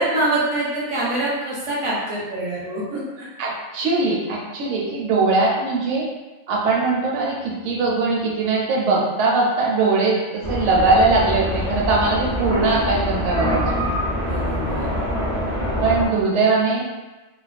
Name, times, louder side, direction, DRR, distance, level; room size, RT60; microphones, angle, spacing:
voice 1, 0.0-3.3 14.2-14.9, right 1 dB, 35° right, -7 dB, 0.5 m, -25 dB
voice 2, 3.4-6.1 6.5-13.8 15.8-16.8, right 3 dB, 70° right, -3 dB, 0.9 m, -20 dB
sound 1, 10.4-16.1, left 1 dB, 20° left, 0.6 m, -25 dB
2.3 x 2.2 x 2.4 m, 1.1 s
omnidirectional pair, 1.3 m